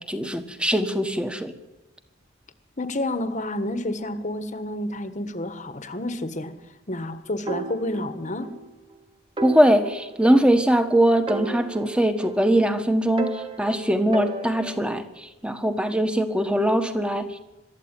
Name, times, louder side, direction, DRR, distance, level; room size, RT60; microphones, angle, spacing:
voice 1, 0.1-1.5 9.4-17.3, right 1 dB, 5° right, 1.5 m, -21 dB
voice 2, 2.8-6.6 6.9-8.6, left 1 dB, 35° left, 1.4 m, -29 dB
sound 1, 7.5-8.6 8.9-9.0 9.4-10.9 11.3-12.7 13.2-15.0, right 2 dB, 25° right, 1.8 m, -34 dB
23.0 x 13.5 x 9.1 m
head